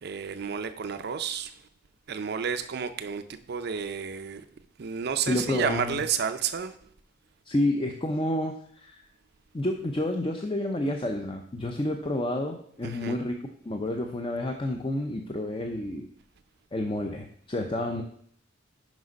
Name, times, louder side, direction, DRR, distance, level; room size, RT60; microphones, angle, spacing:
voice 1, 0.0-1.6 2.1-4.4 4.8-6.8 12.8-13.2, right 6 dB, 50° right, 0.4 m, -31 dB
voice 2, 5.3-6.0 7.5-9.0 9.5-13.3 13.6-16.1 16.7-18.0, left 1 dB, 25° left, 0.5 m, -29 dB
6.2 x 5.1 x 5.2 m
head